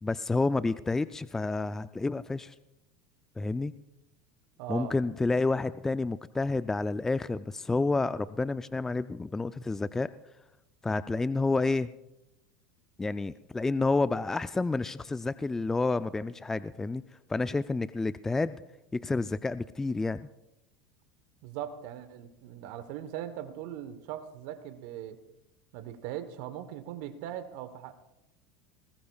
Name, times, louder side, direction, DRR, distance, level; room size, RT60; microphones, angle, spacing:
voice 1, 0.0-2.5 3.4-3.7 4.7-10.1 10.8-11.9 13.0-17.0 17.3-18.6 18.9-20.3, left 3 dB, 10° left, 14 dB, 0.4 m, -29 dB
voice 2, 4.6-5.0 21.4-25.2 25.7-28.0, right 11 dB, 65° right, 11 dB, 1.2 m, -40 dB
20.5 x 19.5 x 2.4 m, 0.93 s
hypercardioid pair, 85°, 3 cm